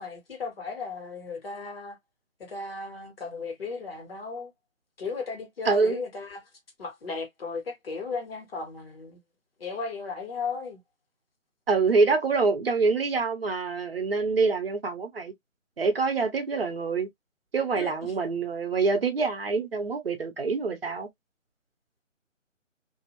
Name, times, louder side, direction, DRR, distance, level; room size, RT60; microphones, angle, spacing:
voice 1, 0.0-2.0 2.4-4.5 5.0-6.5 6.8-9.2 9.6-10.8 17.7-18.1, left 4 dB, 50° left, 1.4 m, -35 dB
voice 2, 5.7-6.0 11.7-15.3 15.8-17.1 17.5-21.1, right 4 dB, 50° right, 0.8 m, -25 dB
2.6 x 2.2 x 2.9 m
figure-of-eight pair, 160°, 39 cm